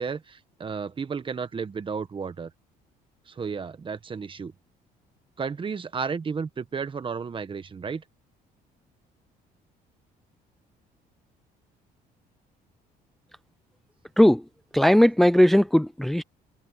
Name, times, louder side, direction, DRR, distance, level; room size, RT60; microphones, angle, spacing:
voice 1, 0.0-2.5 3.3-4.5 5.4-8.0, right 5 dB, 30° right, 1.5 m, -33 dB
voice 2, 14.7-16.2, equal, ahead, 0.6 m, -18 dB
cardioid pair, 110°, 17 cm